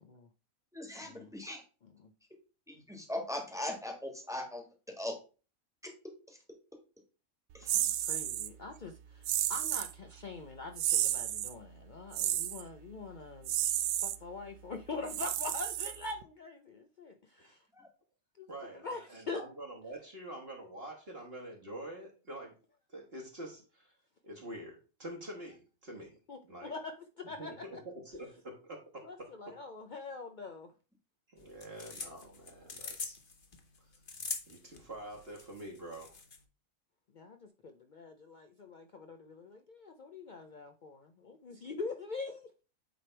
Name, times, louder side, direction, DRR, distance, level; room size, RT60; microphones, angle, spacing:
voice 1, 0.7-1.6 2.7-4.6 5.0-5.1 6.3-6.4 7.5-7.8 17.7-17.9, left 1 dB, ahead, 1.4 m, -39 dB
voice 2, 7.7-13.5 14.0-17.6 18.4-18.5 18.8-19.4 26.3-27.8 29.0-30.7 37.1-42.6, left 3 dB, 70° left, 0.4 m, -44 dB
sound 1, 7.7-8.5 9.2-9.9 10.8-11.5 12.1-12.6 13.4-14.2 15.1-16.2, right 12 dB, 75° right, 0.9 m, -32 dB
voice 3, 18.5-22.5 22.9-23.9 24.2-26.2 26.4-26.7 27.2-29.6 31.3-33.2 33.9-34.0 34.5-36.1, right 1 dB, 45° right, 1.5 m, -46 dB
sound 2, 31.4-36.4, left 4 dB, 40° left, 1.1 m, -43 dB
9.0 x 3.3 x 4.4 m
omnidirectional pair, 1.5 m